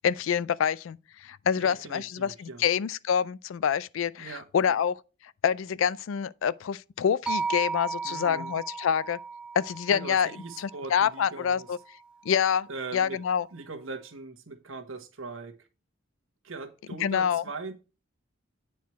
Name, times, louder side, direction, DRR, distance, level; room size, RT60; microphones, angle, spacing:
voice 1, 0.0-5.0 5.4-9.2 9.6-10.3 10.6-11.8 12.3-12.7 12.9-13.5 17.0-17.4, left 8 dB, 70° left, 0.4 m, -26 dB
voice 2, 1.5-2.6 4.2-4.8 8.0-8.6 9.9-11.7 12.7-13.2 13.5-15.5 16.4-17.7, right 3 dB, 75° right, 1.4 m, -40 dB
sound 1, 7.3-11.5, right 4 dB, 5° right, 0.7 m, -35 dB
9.2 x 4.7 x 4.5 m
head